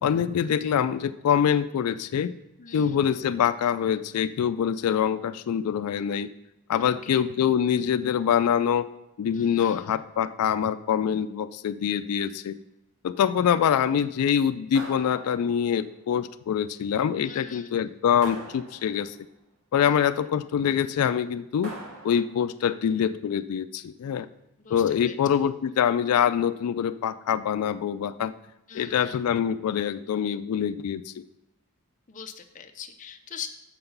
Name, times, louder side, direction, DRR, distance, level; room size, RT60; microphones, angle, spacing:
voice 1, 0.0-2.3 2.7-6.3 6.7-8.9 9.2-12.6 13.0-19.2 19.7-21.7 22.0-24.3 24.7-28.3 28.7-31.1, left 8 dB, 90° left, 13 dB, 0.3 m, -25 dB
voice 2, 2.6-3.0 6.8-7.2 9.3-9.9 17.2-17.7 19.8-20.3 24.6-25.2 28.7-29.2 32.1-33.5, left 7 dB, 35° left, 6 dB, 0.5 m, -42 dB
sound 1, 14.7-15.8 18.2-19.2 21.6-22.5, right 1 dB, 80° right, 1.9 m, -42 dB
6.8 x 5.8 x 5.4 m, 0.91 s
head